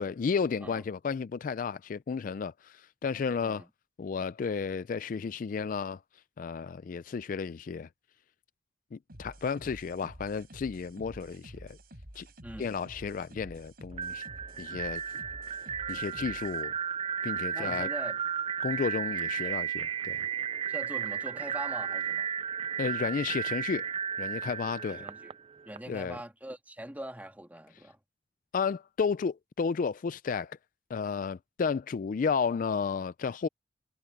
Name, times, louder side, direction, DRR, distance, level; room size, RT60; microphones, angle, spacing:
voice 1, 0.0-3.6 4.0-6.0 6.4-7.9 8.9-11.8 12.2-12.3 12.6-14.2 14.6-15.0 15.9-16.7 17.2-17.9 18.6-20.2 22.8-23.9 24.2-25.0 25.9-26.2 28.5-30.6 30.9-33.5, left 5 dB, 45° left, 0.3 m, -32 dB
sound 1, 9.1-16.6, equal, 55° right, 5.6 m, -50 dB
voice 2, 12.4-12.8 17.5-18.2 19.4-19.6 20.7-22.3 24.9-25.4 25.6-28.0, right 1 dB, 10° right, 2.1 m, -43 dB
sound 2, 13.9-25.8, right 7 dB, 30° right, 0.3 m, -34 dB
head